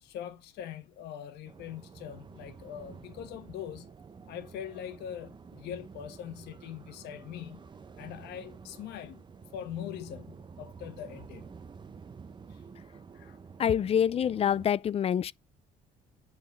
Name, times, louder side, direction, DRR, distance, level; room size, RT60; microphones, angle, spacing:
voice 1, 0.0-3.9 4.2-7.6 8.0-9.2 9.5-11.5 13.1-13.4, left 9 dB, 80° left, 1.3 m, -42 dB
sound 1, 1.5-14.7, right 5 dB, 25° right, 0.7 m, -50 dB
voice 2, 13.6-15.3, left 9 dB, 35° left, 0.4 m, -26 dB
8.7 x 3.9 x 5.2 m
cardioid pair, 110°, 17 cm